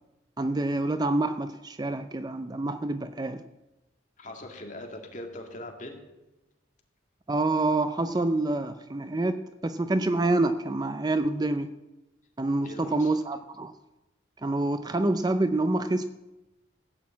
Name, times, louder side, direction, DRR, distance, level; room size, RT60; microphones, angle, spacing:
voice 1, 0.4-3.4 7.3-11.7 12.4-13.7 14.4-16.0, right 2 dB, 20° right, 10 dB, 0.4 m, -27 dB
voice 2, 4.2-6.0 12.6-13.1, left 1 dB, 40° left, 2 dB, 2.1 m, -41 dB
16.0 x 6.3 x 8.5 m, 1.0 s
head